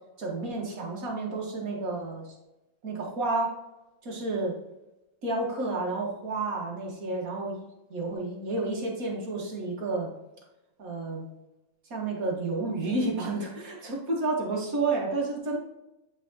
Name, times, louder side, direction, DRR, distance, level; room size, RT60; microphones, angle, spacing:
voice 1, 0.2-2.3 2.8-3.5 4.0-4.6 5.2-7.6 7.9-10.1 10.8-11.3 11.9-15.6, right 3 dB, 40° right, -1 dB, 1.9 m, -30 dB
9.1 x 5.1 x 2.9 m, 0.94 s
omnidirectional pair, 2.4 m